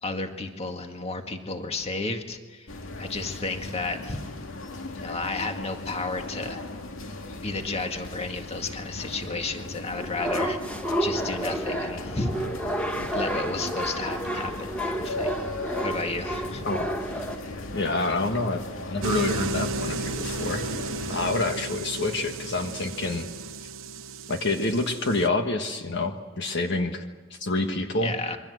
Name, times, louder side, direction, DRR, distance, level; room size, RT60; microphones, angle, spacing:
voice 1, 0.0-4.2 4.9-6.6 7.4-10.6 11.0-12.3 13.1-15.5 15.8-16.6 28.0-28.4, left 3 dB, 30° left, 5 dB, 1.9 m, -32 dB
sound 1, 2.7-21.4, left 2 dB, 75° left, 2.2 m, -38 dB
sound 2, 10.0-17.4, right 1 dB, 5° left, 1.6 m, -30 dB
voice 2, 17.7-20.7 21.1-23.3 24.3-27.0 27.3-28.1, left 2 dB, 60° left, 5 dB, 1.5 m, -27 dB
sound 3, 19.0-25.3, right 3 dB, 80° right, 1.0 m, -33 dB
27.5 x 23.5 x 7.9 m, 1.3 s
head